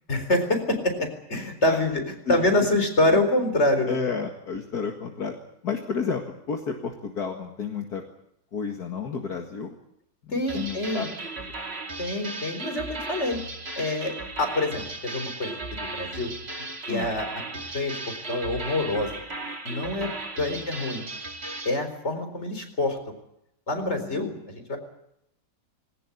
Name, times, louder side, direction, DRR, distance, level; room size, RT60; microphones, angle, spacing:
voice 1, 0.1-2.0 2.3-4.0 10.3-11.1 12.0-13.4 13.8-16.3 16.9-17.3 17.7-19.1 19.6-20.1 20.3-21.0 21.6-23.0 23.7-24.8, left 1 dB, 40° left, 7 dB, 4.5 m, -26 dB
voice 2, 2.3-2.8 3.9-5.3 5.6-8.0 8.5-9.8 10.2-11.1 16.9-17.1 20.0-20.2 20.5-20.6 23.8-24.4, left 5 dB, 70° left, 3 dB, 2.4 m, -32 dB
sound 1, 10.5-21.8, right 2 dB, 40° right, 2.8 m, -36 dB
20.5 x 18.5 x 9.8 m, 0.79 s
omnidirectional pair, 1.8 m